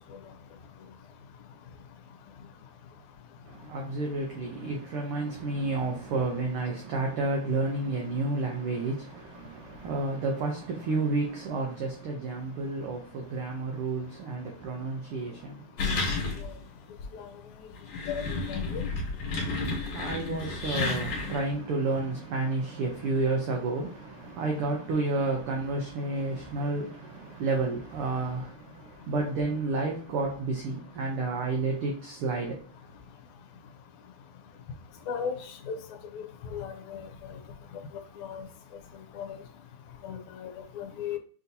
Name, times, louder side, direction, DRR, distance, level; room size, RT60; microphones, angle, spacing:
voice 1, 3.4-15.7 19.6-32.6, right 3 dB, 85° right, 1.2 m, -31 dB
sound 1, 15.8-16.6 17.0-17.1 17.7-21.5, left 3 dB, 65° left, 2.1 m, -31 dB
voice 2, 18.5-18.8 35.1-35.4 35.7-35.8 36.1-36.2 36.5-37.1 38.2-38.4 39.2-39.4 40.0-41.2, left 7 dB, 90° left, 2.0 m, -35 dB
5.9 x 2.7 x 2.7 m
omnidirectional pair, 3.3 m